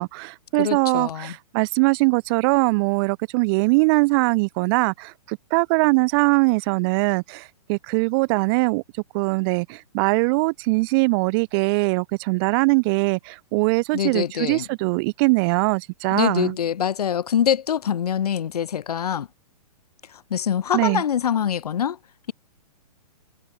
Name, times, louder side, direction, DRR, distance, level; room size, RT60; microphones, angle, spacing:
voice 1, 0.0-8.8 9.1-16.5 20.7-21.0, right 28 dB, 35° right, 3.0 m, -21 dB
voice 2, 0.6-1.3 13.9-14.6 16.1-19.3 20.3-22.0, left 9 dB, 75° left, 2.7 m, -24 dB
hypercardioid pair, 145°, 20 cm